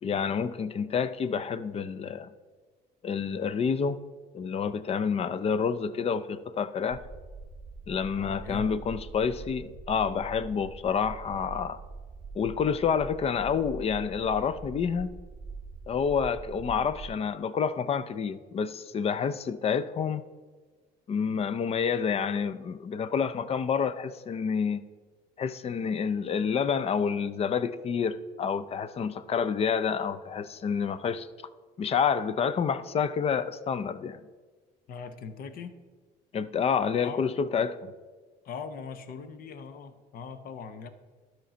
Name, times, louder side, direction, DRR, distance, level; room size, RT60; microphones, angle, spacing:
voice 1, 0.0-2.3 3.0-4.0 4.3-7.0 7.9-11.8 12.4-15.1 15.9-20.2 21.1-24.8 25.4-31.3 31.8-34.2 36.3-37.9, left 6 dB, 35° left, 0.5 m, -28 dB
sound 1, 6.9-17.1, right 4 dB, 10° right, 1.0 m, -43 dB
voice 2, 8.2-8.7 34.9-35.7 37.0-37.4 38.4-40.9, left 5 dB, 60° left, 0.8 m, -40 dB
12.0 x 4.4 x 5.1 m
cardioid pair, 110°, 17 cm